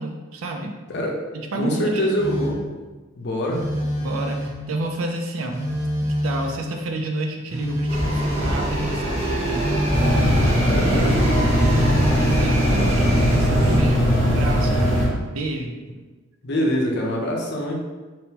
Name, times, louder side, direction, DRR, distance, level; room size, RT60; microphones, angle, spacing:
voice 1, 0.0-0.8 1.3-2.1 4.0-5.6 6.2-10.0 12.2-15.0 15.3-15.8, right 2 dB, 80° right, 3 dB, 0.5 m, -30 dB
voice 2, 0.9-1.2 1.5-2.6 3.2-3.6 10.6-11.7 16.4-17.8, equal, 55° left, -1 dB, 0.6 m, -24 dB
Telephone, 2.2-2.7 3.5-4.7 5.5-6.7 7.5-8.7 9.5-10.6 11.5-12.7 13.5-14.1, equal, 15° right, 0.6 m, -27 dB
sound 1, 7.9-13.8, right 1 dB, 35° right, 0.9 m, -25 dB
sound 2, 9.9-15.1, equal, 60° right, 1.5 m, -19 dB
3.5 x 2.6 x 2.8 m, 1.3 s
head